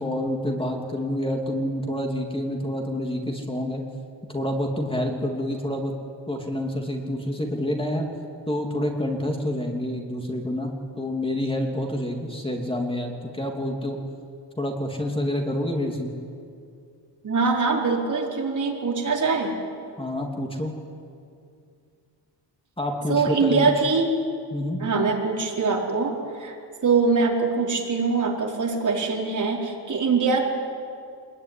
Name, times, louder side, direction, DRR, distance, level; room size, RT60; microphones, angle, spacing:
voice 1, 0.0-3.8 4.3-5.9 6.3-8.1 8.5-14.0 14.6-16.1 20.0-20.8 22.8-23.6 24.5-24.8, left 1 dB, 15° left, 2 dB, 2.9 m, -28 dB
voice 2, 17.2-19.6 23.1-24.1 24.8-26.5 26.8-30.4, right 4 dB, 45° right, -1 dB, 4.7 m, -23 dB
25.0 x 21.5 x 9.9 m, 2.3 s
wide cardioid pair, 150°, 42 cm